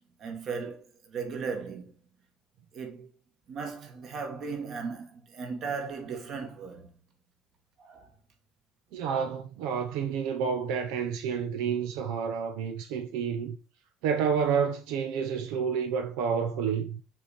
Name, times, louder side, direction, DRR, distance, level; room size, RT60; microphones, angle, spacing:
voice 1, 0.2-1.9 2.7-3.1 3.5-6.9 7.8-8.1, right 5 dB, 40° right, 1.9 m, -37 dB
voice 2, 8.9-13.6 14.0-17.0, right 7 dB, 85° right, 1.0 m, -29 dB
6.7 x 5.0 x 4.3 m
cardioid pair, 160°, 0 cm